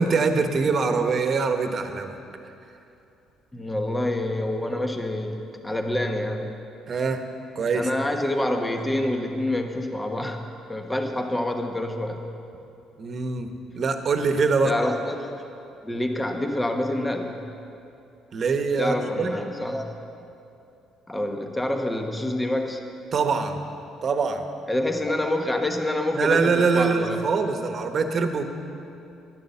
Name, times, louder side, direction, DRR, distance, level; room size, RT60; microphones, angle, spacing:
voice 1, 0.0-2.2 6.9-7.2 7.5-7.9 13.0-13.5 13.7-14.7 18.3-19.4 23.1-23.6 24.0-24.4 26.1-28.4, right 4 dB, 50° right, 6 dB, 1.2 m, -23 dB
voice 2, 3.5-6.5 7.7-12.2 14.6-15.3 15.8-17.4 18.8-19.9 21.1-22.8 24.7-27.2, left 1 dB, 10° left, 4 dB, 1.2 m, -27 dB
11.5 x 9.5 x 7.0 m, 2.7 s
supercardioid pair, 75°, 0 cm